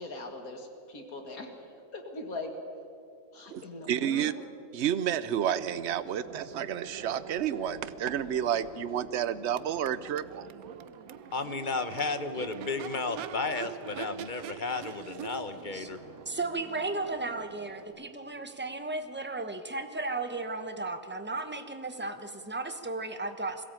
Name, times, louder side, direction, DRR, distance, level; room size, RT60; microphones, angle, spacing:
voice 1, 0.0-1.6 1.9-2.5 3.3-4.4, left 2 dB, 90° left, 4 dB, 2.3 m, -41 dB
voice 2, 3.5-4.3 4.7-10.5, right 9 dB, 60° right, 15 dB, 0.9 m, -30 dB
Crowd / Race car auto racing / Accelerating revving vroom, 5.3-19.1, right 10 dB, 85° right, 1.2 m, -45 dB
sound 1, 5.8-17.9, equal, 65° left, 6.9 m, -53 dB
voice 3, 11.3-16.0, left 3 dB, 40° left, 10 dB, 1.0 m, -33 dB
voice 4, 16.3-23.6, right 3 dB, 10° right, 7 dB, 1.0 m, -35 dB
22.0 x 16.5 x 8.9 m, 2.5 s
omnidirectional pair, 1.5 m